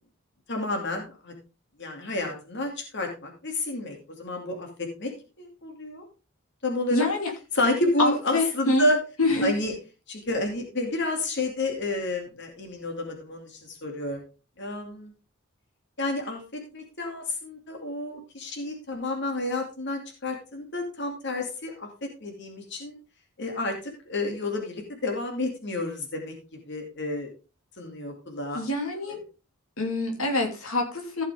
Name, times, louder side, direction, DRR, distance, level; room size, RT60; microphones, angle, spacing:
voice 1, 0.5-1.3 1.8-5.1 5.4-6.0 6.6-7.1 7.5-9.0 9.4-9.7 10.1-14.2 14.6-15.1 16.0-21.9 22.2-23.0 23.4-23.7 24.1-26.3 26.7-27.3 27.8-28.6, left 2 dB, 55° left, 3 dB, 2.5 m, -30 dB
voice 2, 6.9-7.3 8.0-8.9 9.2-9.5 28.5-29.2 29.8-31.2, left 2 dB, 85° left, 2 dB, 2.9 m, -26 dB
15.0 x 6.4 x 3.5 m, 0.31 s
head